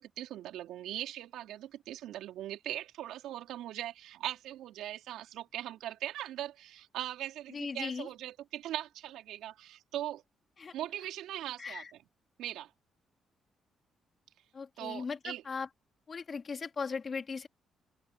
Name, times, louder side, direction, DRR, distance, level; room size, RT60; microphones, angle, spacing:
voice 1, 0.0-10.2 10.7-11.8 12.4-12.7 14.8-15.4, right 13 dB, 85° right, 3.9 m, -40 dB
voice 2, 7.5-8.1 10.6-10.7 11.6-11.9 14.5-15.7 16.1-17.5, left 5 dB, 40° left, 3.2 m, -38 dB
open air
cardioid pair, 90°, 0 cm